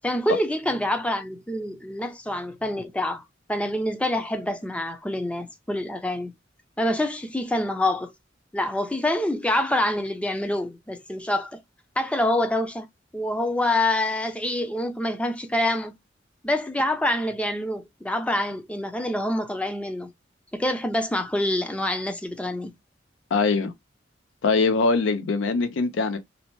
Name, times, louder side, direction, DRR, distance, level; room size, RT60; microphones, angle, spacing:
voice 1, 0.0-3.2 3.5-6.3 6.8-8.1 8.5-11.6 12.0-12.9 13.1-15.9 16.4-20.1 20.5-22.7, left 1 dB, 5° left, 0.4 m, -26 dB
voice 2, 23.3-23.7 24.4-26.2, left 4 dB, 85° left, 0.4 m, -22 dB
2.7 x 2.0 x 2.9 m
head